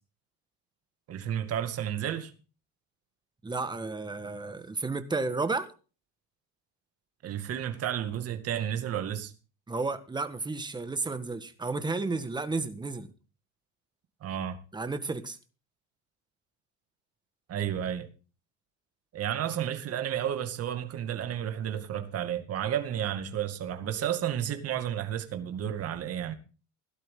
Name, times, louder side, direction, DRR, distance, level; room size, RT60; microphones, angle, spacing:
voice 1, 1.1-2.3 7.2-9.3 14.2-14.6 17.5-18.1 19.1-26.3, right 10 dB, 45° right, 2.3 m, -32 dB
voice 2, 3.4-5.7 9.7-13.1 14.7-15.4, right 3 dB, 15° right, 1.7 m, -32 dB
17.0 x 12.0 x 3.8 m
cardioid pair, 130°, 33 cm